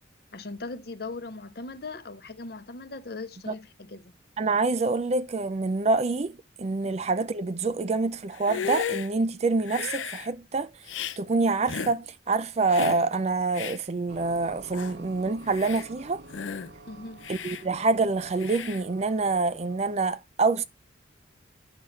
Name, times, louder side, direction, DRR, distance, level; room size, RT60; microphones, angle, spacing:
voice 1, 0.3-4.1 6.8-6.9 16.9-17.3, left 3 dB, 55° left, 0.8 m, -39 dB
voice 2, 4.4-10.7 11.2-16.2 17.3-20.6, right 3 dB, 35° right, 0.4 m, -26 dB
Hiss, 8.3-9.1 9.6-10.3 10.9-11.2 11.7-12.0 12.7-13.0 13.5-13.8 14.4-14.5 14.7-14.9 15.4-15.9 16.3-16.7 17.2-17.6 18.4-18.8, left 6 dB, 90° left, 0.6 m, -34 dB
sound 1, 14.1-20.0, right 2 dB, 60° right, 0.7 m, -48 dB
9.8 x 5.9 x 3.2 m
head